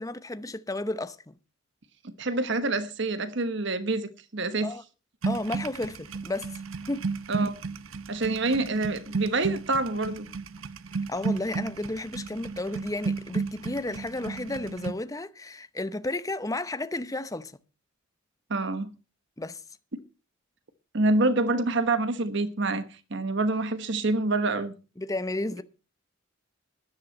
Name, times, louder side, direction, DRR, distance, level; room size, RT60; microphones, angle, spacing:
voice 1, 0.0-1.4 4.6-4.8 5.2-6.6 6.9-7.0 11.1-17.5 19.4-19.6 25.0-25.6, left 2 dB, 15° left, 0.7 m, -32 dB
voice 2, 2.0-4.7 7.3-7.5 8.1-10.3 18.5-18.9 20.9-22.8 23.1-24.7, right 2 dB, 60° right, 1.1 m, -26 dB
sound 1, 5.2-14.9, right 4 dB, 85° right, 0.8 m, -33 dB
13.0 x 10.5 x 5.4 m
head